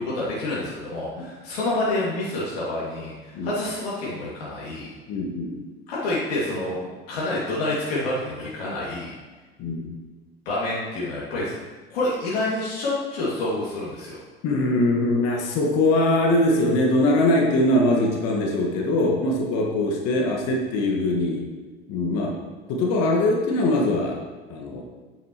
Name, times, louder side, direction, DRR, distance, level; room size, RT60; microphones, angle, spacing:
voice 1, 0.0-4.9 5.9-6.8 7.1-9.1 10.5-11.5 11.9-14.2, left 2 dB, 70° left, -7 dB, 2.4 m, -28 dB
voice 2, 5.1-5.6 9.6-9.8 14.4-21.5 21.9-22.4 22.7-24.2 24.5-24.8, left 1 dB, 55° left, -1 dB, 1.7 m, -22 dB
10.0 x 9.2 x 3.0 m, 1.3 s
figure-of-eight pair, 70°, 31 cm